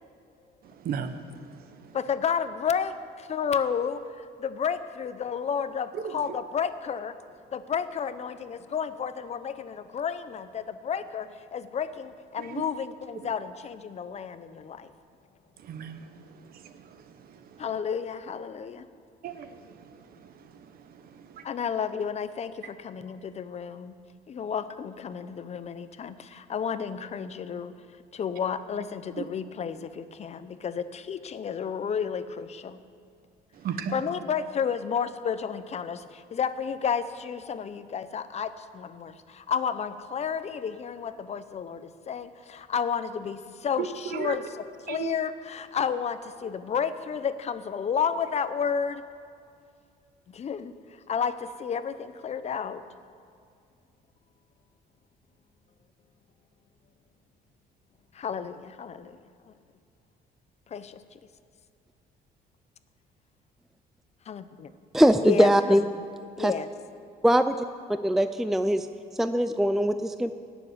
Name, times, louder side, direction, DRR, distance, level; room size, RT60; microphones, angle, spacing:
voice 1, 0.6-2.0 5.9-6.4 12.4-12.6 15.6-17.6 19.2-21.4 29.2-29.3 33.5-33.9 43.8-44.4 44.9-45.1, right 7 dB, 60° right, 9 dB, 1.2 m, -37 dB
voice 2, 1.9-7.1 7.5-14.9 17.6-18.8 21.4-23.9 24.3-27.7 28.1-32.8 33.9-49.0 50.3-50.7 51.1-52.8 58.1-59.1 60.7-61.0 64.3-64.7 65.2-65.8 66.4-66.7, left 7 dB, 40° left, 12 dB, 0.7 m, -31 dB
voice 3, 64.9-65.8 66.4-66.5 67.2-67.6 68.0-68.9 69.2-70.3, equal, ahead, 10 dB, 0.4 m, -21 dB
16.5 x 7.2 x 9.6 m, 2.3 s
cardioid pair, 110°, 17 cm